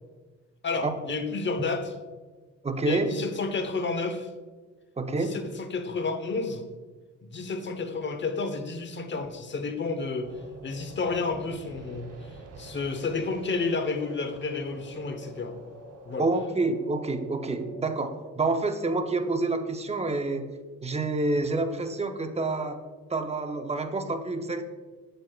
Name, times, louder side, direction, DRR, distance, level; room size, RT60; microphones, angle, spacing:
voice 1, 0.6-1.9 2.8-4.3 5.2-6.7 7.2-10.3 10.6-12.3 12.6-15.6 16.0-16.3, left 4 dB, 40° left, 7 dB, 0.9 m, -31 dB
voice 2, 2.6-3.1 5.0-5.4 16.2-22.8 23.1-24.7, right 3 dB, 20° right, 7 dB, 0.7 m, -28 dB
sound 1, 10.2-18.1, right 2 dB, 55° right, 1.0 m, -46 dB
8.1 x 7.7 x 2.3 m, 1.3 s
cardioid pair, 90°, 30 cm